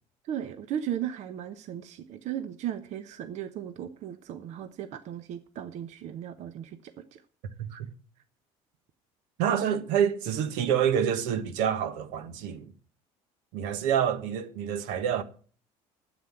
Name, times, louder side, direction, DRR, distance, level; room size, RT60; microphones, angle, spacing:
voice 1, 0.2-7.2, right 10 dB, 60° right, 1.0 m, -36 dB
voice 2, 7.6-7.9 9.4-12.7 13.5-15.2, right 8 dB, 80° right, 1.4 m, -27 dB
9.5 x 8.2 x 8.6 m
supercardioid pair, 90°, 13 cm